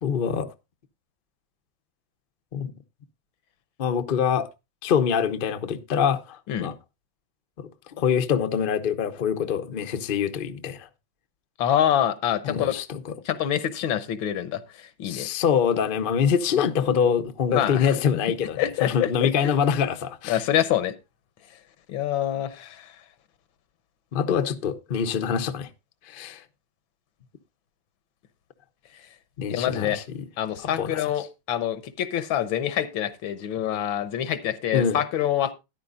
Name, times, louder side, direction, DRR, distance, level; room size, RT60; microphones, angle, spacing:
voice 1, 0.0-0.5 2.5-2.7 3.8-4.5 4.8-6.7 7.6-7.7 8.0-10.9 12.4-13.1 15.0-20.4 24.1-25.7 26.1-26.4 29.4-30.2 30.8-31.0 34.7-35.0, left 7 dB, 60° left, 0.5 m, -25 dB
voice 2, 11.6-12.7 13.2-15.3 17.5-17.9 18.6-19.3 20.3-20.9 21.9-22.9 29.5-30.0 30.4-35.5, left 11 dB, 85° left, 1.7 m, -26 dB
13.5 x 10.5 x 2.5 m
omnidirectional pair, 2.1 m